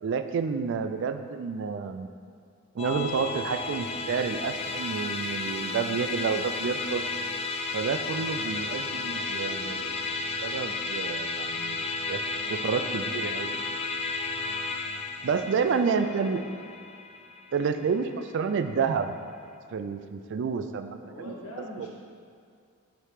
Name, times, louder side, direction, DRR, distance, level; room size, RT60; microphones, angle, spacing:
voice 1, 0.0-2.1 2.8-7.0 7.7-9.9 10.4-12.2 12.5-13.5 15.2-16.4 17.5-19.2 19.7-21.0 21.3-21.4 21.8-21.9, right 5 dB, 55° right, 9 dB, 0.3 m, -29 dB
voice 2, 0.7-1.0 8.4-10.1 12.7-13.7 14.2-14.5 15.5-16.6 17.5-18.0 21.0-21.9, left 1 dB, 85° left, -4 dB, 1.3 m, -46 dB
Musical instrument, 2.8-18.3, left 3 dB, 25° left, 0.3 m, -33 dB
5.0 x 4.3 x 4.9 m, 2.3 s
head